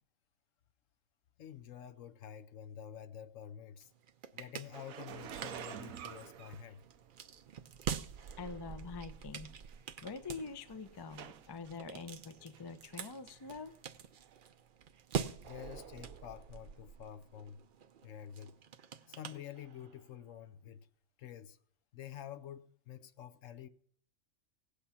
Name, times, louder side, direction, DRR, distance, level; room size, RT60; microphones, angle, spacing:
voice 1, 1.4-3.9 4.3-6.8 15.4-17.6 18.0-18.5 19.1-20.9 21.2-21.6 21.9-23.7, left 9 dB, 70° left, 1.1 m, -49 dB
sound 1, 3.8-20.1, right 7 dB, 50° right, 0.6 m, -46 dB
sound 2, 4.7-7.3 8.1-8.3 9.1-9.2 9.5-9.8 10.4-11.8 12.2-12.7 13.0-13.1 14.3-14.4, right 9 dB, 90° right, 1.2 m, -48 dB
voice 2, 8.4-9.5 10.0-13.7, left 4 dB, 30° left, 0.5 m, -45 dB
17.0 x 8.6 x 5.7 m
omnidirectional pair, 1.4 m